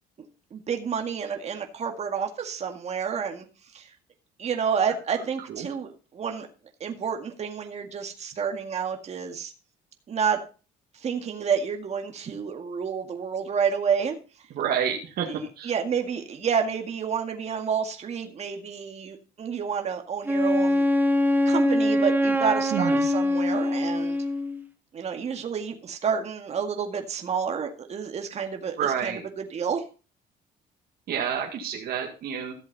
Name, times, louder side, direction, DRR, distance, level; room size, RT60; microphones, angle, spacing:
voice 1, 0.5-3.5 3.7-3.9 4.4-6.5 6.8-9.5 10.1-10.4 10.9-14.1 15.3-20.8 21.5-24.2 24.9-29.8, right 6 dB, 40° right, 4 dB, 2.0 m, -29 dB
voice 2, 14.5-15.7 22.7-23.1 28.8-29.2 31.1-32.5, right 8 dB, 65° right, 0 dB, 2.1 m, -29 dB
Wind instrument woodwind instrument, 20.2-24.6, left 1 dB, 10° right, 1.2 m, -23 dB
14.5 x 7.5 x 4.2 m, 0.35 s
cardioid pair, 110°, 17 cm